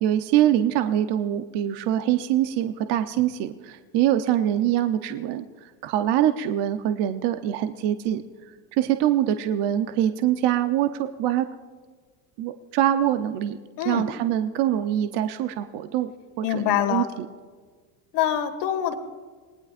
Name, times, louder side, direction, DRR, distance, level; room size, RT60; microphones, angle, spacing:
voice 1, 0.0-5.4 5.8-8.2 8.7-11.5 12.4-13.6 13.8-16.1 16.4-17.3, right 11 dB, 60° right, 8 dB, 0.9 m, -24 dB
voice 2, 16.4-17.1 18.1-18.9, left 11 dB, 60° left, 5 dB, 2.1 m, -24 dB
26.5 x 19.5 x 2.6 m, 1.5 s
supercardioid pair, 105°, 46 cm